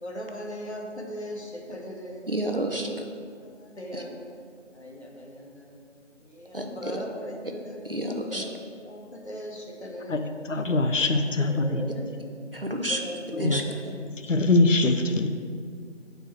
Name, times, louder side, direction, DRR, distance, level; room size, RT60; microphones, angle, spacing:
voice 1, 0.0-2.2 3.3-4.3 4.7-5.7 6.2-7.8 8.3-8.5 8.8-10.2 11.4-12.2 12.8-13.9, equal, 60° left, 0 dB, 1.2 m, -39 dB
voice 2, 2.3-2.9 3.9-4.0 6.5-6.9 7.8-8.4 12.5-13.0 13.4-13.6, right 1 dB, 50° right, 2 dB, 0.6 m, -29 dB
voice 3, 10.5-11.8 13.3-13.6 14.2-15.3, left 2 dB, 80° left, 6 dB, 0.7 m, -22 dB
6.5 x 4.5 x 4.5 m, 2.2 s
figure-of-eight pair, 180°, 37 cm